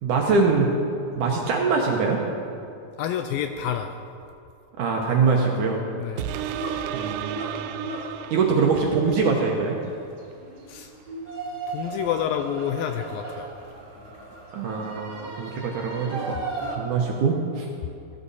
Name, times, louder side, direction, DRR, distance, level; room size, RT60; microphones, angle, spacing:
voice 1, 0.0-0.7 1.2-2.2 4.8-5.8 6.5-7.7 8.3-9.8 14.5-16.4 16.6-17.7, right 4 dB, 70° right, 0 dB, 2.1 m, -23 dB
voice 2, 3.0-4.0 6.0-6.3 10.7-10.9 11.7-13.5, left 9 dB, 85° left, 7 dB, 2.1 m, -28 dB
sound 1, 6.2-9.1 9.6-9.7, right 11 dB, 85° right, 2.1 m, -33 dB
sound 2, 6.3-16.8, right 3 dB, 40° right, 2.7 m, -36 dB
16.0 x 13.0 x 4.1 m, 2.6 s
omnidirectional pair, 4.5 m